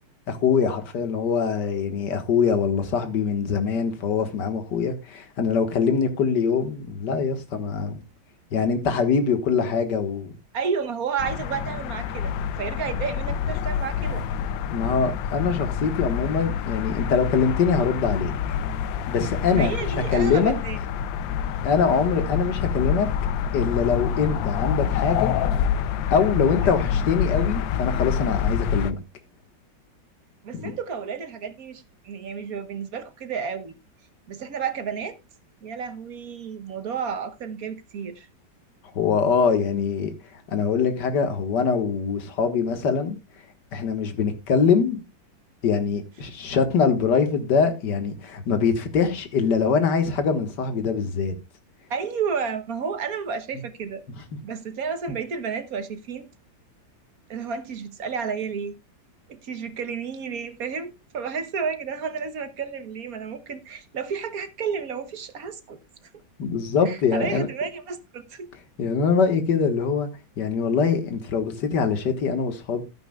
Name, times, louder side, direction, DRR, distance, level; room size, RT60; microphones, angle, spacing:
voice 1, 0.3-8.0 8.5-10.4 14.7-18.3 19.1-19.7 20.1-20.5 21.6-23.1 23.5-25.3 26.1-29.0 30.5-30.7 38.9-40.1 40.5-43.2 43.7-45.0 45.6-51.3 66.4-67.5 68.8-70.1 70.4-72.8, left 5 dB, 65° left, 2.1 m, -23 dB
voice 2, 10.5-12.3 12.6-14.2 19.5-20.8 30.4-33.7 34.3-35.2 35.6-38.3 51.9-54.0 54.4-56.3 57.3-58.7 59.3-65.8 66.8-68.5, right 6 dB, 55° right, 1.4 m, -31 dB
sound 1, 11.2-28.9, left 8 dB, 85° left, 1.4 m, -27 dB
12.5 x 11.0 x 2.3 m
omnidirectional pair, 2.0 m